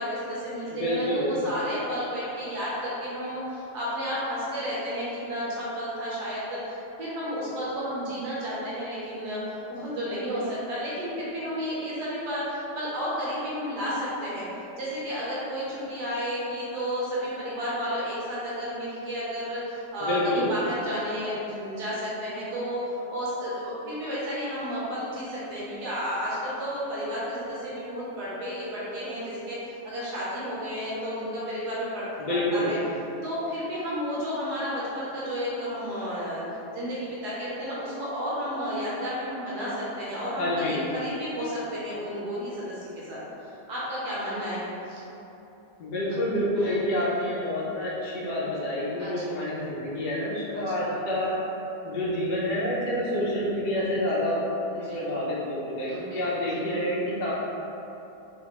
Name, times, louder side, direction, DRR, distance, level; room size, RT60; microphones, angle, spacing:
voice 1, 0.0-9.4 9.7-14.4 14.8-29.6 29.8-32.8 33.2-36.4 36.7-43.2 43.4-44.6 44.9-45.0 46.6-46.8 49.0-49.4 50.5-50.6 54.7-55.0 55.9-56.8, equal, 70° right, -8 dB, 1.4 m, -32 dB
voice 2, 0.7-1.3 20.0-20.5 32.2-32.7 40.4-40.8 45.8-51.4 51.8-54.4 54.7-57.3, left 1 dB, 75° left, -7 dB, 1.5 m, -28 dB
4.1 x 3.4 x 3.0 m, 3.0 s
omnidirectional pair, 1.8 m